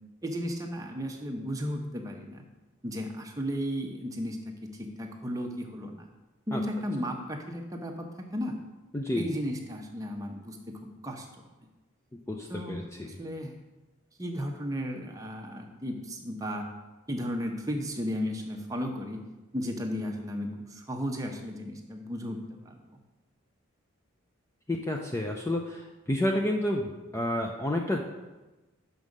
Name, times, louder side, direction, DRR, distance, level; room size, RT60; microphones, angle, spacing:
voice 1, 0.2-2.4 2.8-4.5 4.8-6.1 6.5-8.6 9.2-10.6 11.0-11.4 12.5-12.8 13.1-13.6 14.2-16.7 17.1-19.2 19.5-22.7, equal, 15° right, 2 dB, 0.8 m, -34 dB
voice 2, 8.9-9.3 12.3-13.1 24.7-28.0, left 1 dB, 15° left, 1 dB, 0.4 m, -30 dB
6.2 x 5.4 x 6.5 m, 1.1 s
head